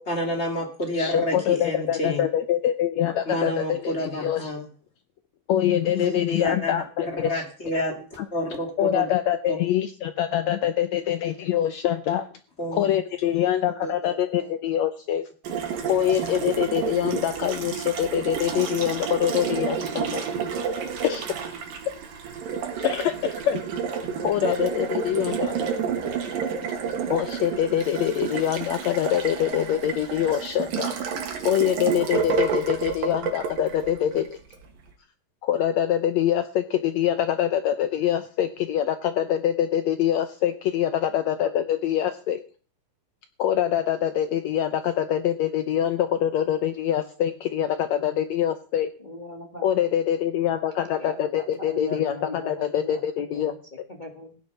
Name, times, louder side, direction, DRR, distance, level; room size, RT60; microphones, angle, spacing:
voice 1, 0.1-2.2 3.3-4.7 5.9-6.7 7.1-8.1 8.3-9.1 9.5-9.6 12.6-12.9 13.3-14.5, left 1 dB, 20° left, 3 dB, 2.4 m, -29 dB
voice 2, 1.0-4.5 5.5-7.4 8.2-8.3 8.8-12.3 12.7-15.3 15.8-20.2 21.0-21.2 22.8-23.6 24.2-25.5 27.1-30.9 31.4-34.3 35.4-42.4 43.4-48.9 49.6-53.5, left 10 dB, 75° left, 10 dB, 1.6 m, -24 dB
Water tap faucet, 15.4-34.6, right 6 dB, 85° right, 3.7 m, -30 dB
voice 3, 49.0-49.6 51.0-53.0 53.3-53.5 53.9-54.3, left 1 dB, 40° left, 2 dB, 0.6 m, -38 dB
16.0 x 9.5 x 5.7 m, 0.42 s
omnidirectional pair, 3.9 m